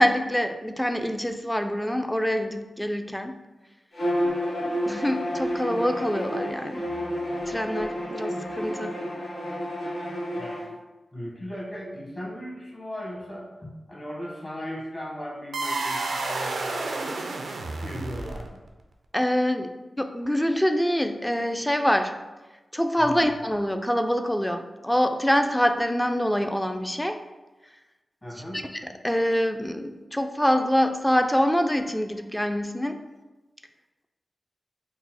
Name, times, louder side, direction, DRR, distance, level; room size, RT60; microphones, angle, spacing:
voice 1, 0.0-3.4 4.6-6.8 7.5-9.0 19.1-22.1 22.7-27.2 28.5-33.0, equal, 10° left, 7 dB, 0.3 m, -25 dB
Bowed string instrument, 3.9-10.7, equal, 80° left, 1.3 m, -30 dB
voice 2, 11.1-17.2 17.8-18.6 23.0-23.2 28.2-28.6, equal, 35° left, -2 dB, 1.2 m, -37 dB
sound 1, 15.5-18.7, right 3 dB, 85° right, 0.4 m, -30 dB
3.9 x 2.0 x 4.2 m, 1.1 s
cardioid pair, 40°, 0 cm